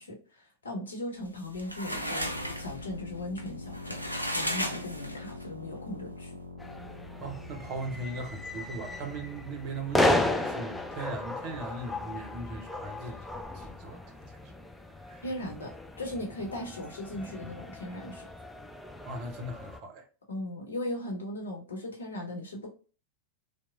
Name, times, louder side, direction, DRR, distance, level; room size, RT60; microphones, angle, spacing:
voice 1, 0.0-2.3 2.6-4.0 4.3-6.4 15.2-18.3 20.3-22.7, left 1 dB, 70° left, 0.8 m, -38 dB
sound 1, 1.3-5.5, equal, 90° left, 0.3 m, -35 dB
sound 2, 2.2-11.8, left 2 dB, 90° right, 0.4 m, -45 dB
sound 3, 6.6-19.8, left 1 dB, 5° left, 0.3 m, -34 dB
voice 2, 7.2-14.4 15.0-15.2 19.0-20.0, right 2 dB, 40° right, 0.6 m, -39 dB
2.9 x 2.1 x 2.3 m
figure-of-eight pair, 90°, 0 cm